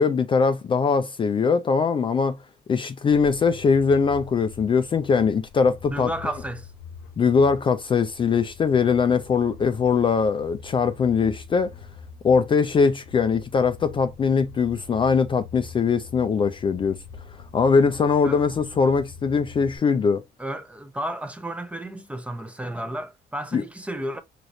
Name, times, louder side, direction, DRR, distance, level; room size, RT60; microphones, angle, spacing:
voice 1, 0.0-2.4 2.7-6.1 7.2-11.7 12.2-17.0 17.5-20.2 23.5-23.6, left 5 dB, 30° left, 0.4 m, -21 dB
sound 1, 3.0-19.8, left 5 dB, 85° left, 0.9 m, -44 dB
voice 2, 5.9-6.7 18.2-18.4 20.4-24.2, right 1 dB, 5° right, 0.6 m, -32 dB
4.8 x 3.0 x 2.6 m
cardioid pair, 110°, 17 cm